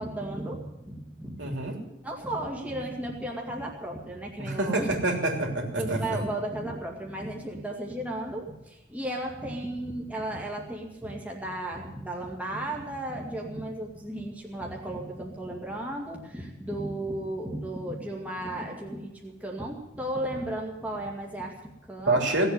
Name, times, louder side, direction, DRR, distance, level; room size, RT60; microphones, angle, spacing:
voice 1, 0.0-1.6 2.0-4.9 5.8-22.2, right 1 dB, 5° right, -1 dB, 2.1 m, -34 dB
voice 2, 1.4-1.8 4.4-6.2 22.1-22.5, right 2 dB, 60° right, 2 dB, 3.2 m, -27 dB
17.5 x 8.1 x 9.6 m, 0.91 s
head